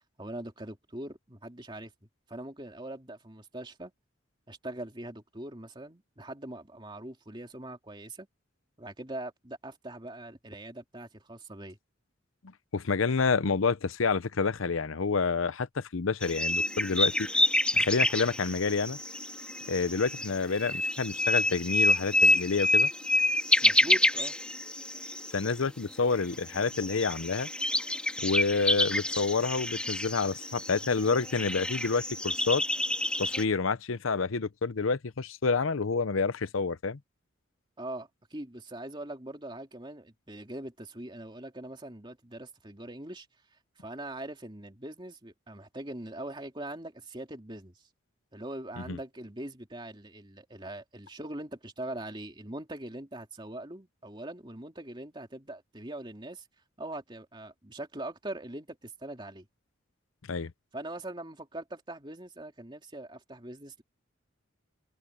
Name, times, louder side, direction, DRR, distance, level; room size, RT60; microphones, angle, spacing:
voice 1, 0.2-3.9 4.5-8.3 8.8-11.8 23.6-24.3 37.8-43.3 43.8-47.8 48.3-56.5 56.8-59.5 60.7-63.8, right 1 dB, 25° right, 2.9 m, -42 dB
voice 2, 12.7-17.3 17.7-19.0 19.7-22.9 25.3-27.5 28.2-32.6 33.2-37.0 48.9-49.0 60.3-60.5, left 4 dB, 85° left, 0.7 m, -28 dB
sound 1, 16.2-25.6 25.9-26.0 26.2-33.4, left 1 dB, 5° left, 2.1 m, -28 dB
open air
head